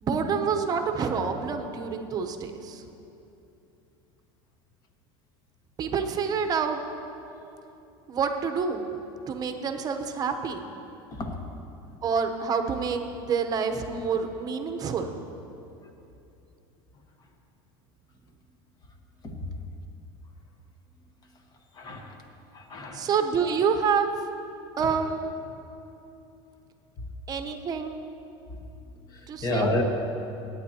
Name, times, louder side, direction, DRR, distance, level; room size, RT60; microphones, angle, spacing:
voice 1, 0.0-2.8 5.8-6.8 8.1-8.8 9.3-10.7 12.0-15.1 22.9-24.1 24.8-25.4 27.3-28.1 29.3-29.7, right 6 dB, 30° right, 6 dB, 0.9 m, -27 dB
voice 2, 21.7-22.2 22.5-23.1 24.8-24.9 28.5-28.6 28.9-29.8, left 2 dB, 30° left, 3 dB, 1.3 m, -31 dB
18.0 x 8.8 x 2.9 m, 2.8 s
supercardioid pair, 130°, 12 cm